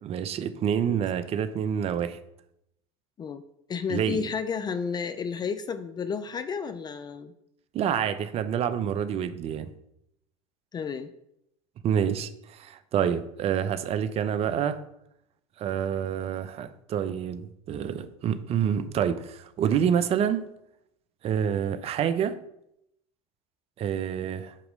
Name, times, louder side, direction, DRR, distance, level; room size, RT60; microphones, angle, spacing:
voice 1, 0.0-2.2 3.9-4.3 7.7-9.7 11.8-14.8 15.6-20.4 21.2-22.3 23.8-24.5, right 8 dB, 40° right, 12 dB, 0.6 m, -27 dB
voice 2, 3.7-7.3 10.7-11.1, left 6 dB, 25° left, 11 dB, 0.5 m, -32 dB
8.5 x 3.0 x 5.3 m, 0.79 s
hypercardioid pair, 90°, 16 cm